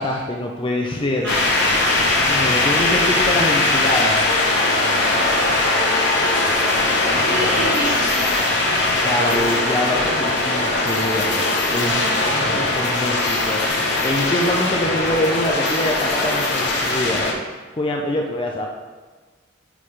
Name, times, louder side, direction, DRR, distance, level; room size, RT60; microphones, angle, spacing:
voice 1, 0.0-1.4 2.2-4.3 4.8-5.2 9.0-11.4 11.7-17.3 17.7-18.7, left 1 dB, 25° left, 0 dB, 0.5 m, -25 dB
voice 2, 1.2-2.0 2.9-3.4 6.9-9.7 11.7-12.5, right 1 dB, 60° right, -6 dB, 1.4 m, -30 dB
sound 1, 1.3-17.3, left 2 dB, 60° left, 0.9 m, -20 dB
8.4 x 3.7 x 3.2 m, 1.4 s
head